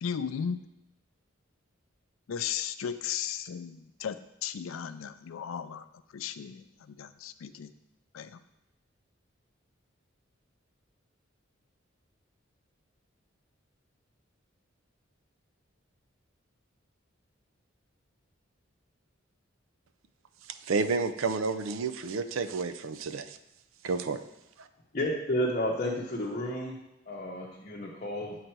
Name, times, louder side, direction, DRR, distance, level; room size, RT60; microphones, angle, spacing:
voice 1, 0.0-0.6 2.3-5.9 6.1-7.7 8.1-8.4, left 8 dB, 85° left, 12 dB, 0.4 m, -36 dB
voice 2, 20.5-23.4 23.8-24.2 24.6-24.7, right 4 dB, 85° right, 10 dB, 0.5 m, -30 dB
voice 3, 24.9-26.7 27.1-28.4, equal, 40° left, -3 dB, 0.8 m, -31 dB
7.6 x 4.0 x 4.6 m, 0.88 s
head